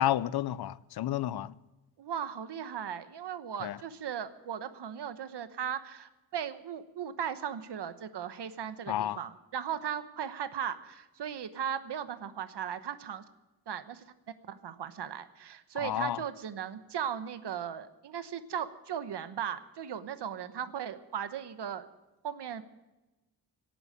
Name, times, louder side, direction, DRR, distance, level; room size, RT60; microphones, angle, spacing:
voice 1, 0.0-1.5 3.6-3.8 8.9-9.2 15.8-16.2, left 12 dB, 60° left, 0.5 m, -30 dB
voice 2, 2.0-13.2 13.7-14.0 14.5-21.8 22.2-22.6, right 8 dB, 70° right, 1.1 m, -37 dB
18.0 x 8.9 x 8.7 m
wide cardioid pair, 170°, 43 cm